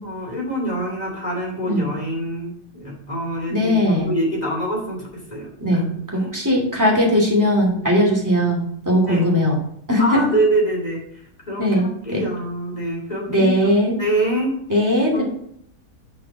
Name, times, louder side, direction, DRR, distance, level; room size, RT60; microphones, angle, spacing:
voice 1, 0.0-5.8 6.1-6.3 9.1-9.2 10.0-11.0 11.4-13.5 14.0-14.6 15.1-15.2, right 1 dB, 25° left, -3 dB, 3.1 m, -25 dB
voice 2, 3.5-4.1 5.6-5.8 6.1-8.6 8.8-9.6 9.9-10.0 11.6-12.2 13.3-14.0 14.7-15.2, left 1 dB, 10° right, -2 dB, 2.5 m, -19 dB
6.1 x 6.0 x 6.2 m, 0.68 s
omnidirectional pair, 1.8 m